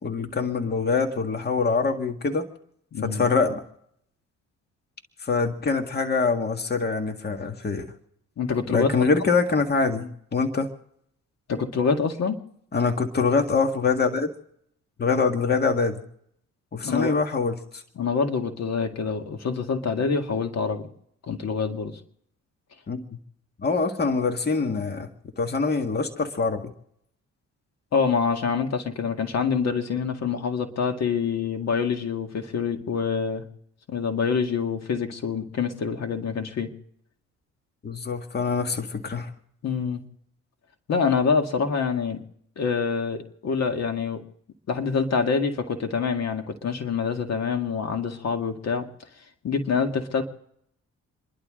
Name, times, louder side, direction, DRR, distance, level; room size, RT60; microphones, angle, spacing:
voice 1, 0.0-2.5 3.0-3.6 5.2-7.9 8.7-10.7 12.7-14.3 15.0-16.0 16.7-17.8 22.9-23.0 23.6-25.1 25.4-26.6 37.8-39.3, left 4 dB, 35° left, 5 dB, 1.9 m, -24 dB
voice 2, 2.9-3.3 8.4-8.9 11.5-12.4 16.8-17.2 18.0-20.9 21.3-21.9 24.7-24.8 27.9-33.4 33.9-36.7 39.6-40.0 40.9-42.2 42.6-44.2 44.7-48.9 49.4-50.2, left 5 dB, 60° left, 5 dB, 2.1 m, -26 dB
28.5 x 11.5 x 3.8 m, 0.71 s
cardioid pair, 90°, 30 cm